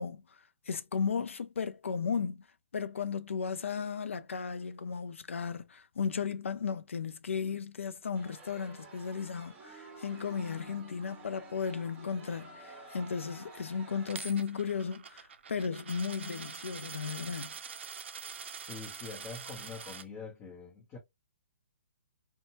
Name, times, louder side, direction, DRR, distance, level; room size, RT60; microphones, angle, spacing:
voice 1, 0.0-2.4 2.7-17.5, left 6 dB, 75° left, 0.4 m, -35 dB
sound 1, 8.2-14.2, right 3 dB, 20° right, 1.0 m, -51 dB
Coin (dropping), 14.1-20.0, right 6 dB, 60° right, 0.5 m, -44 dB
voice 2, 18.5-21.0, left 5 dB, 25° left, 1.0 m, -45 dB
2.7 x 2.2 x 2.9 m
hypercardioid pair, 140°, 7 cm